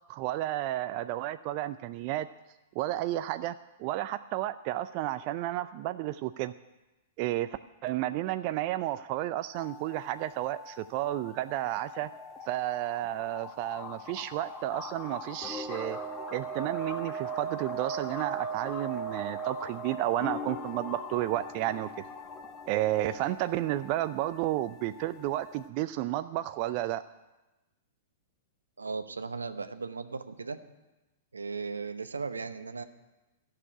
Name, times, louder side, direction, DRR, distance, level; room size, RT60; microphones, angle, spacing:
voice 1, 0.1-2.3 2.8-6.5 7.2-12.1 12.4-16.0 16.3-21.9 22.7-27.0, right 14 dB, 45° right, 11 dB, 0.4 m, -32 dB
sound 1, 9.5-25.7, right 1 dB, 20° left, 1.4 m, -40 dB
voice 2, 28.8-30.6 31.3-32.8, right 4 dB, 85° right, 10 dB, 0.8 m, -37 dB
13.5 x 6.7 x 9.7 m, 1.1 s
figure-of-eight pair, 105°, 0 cm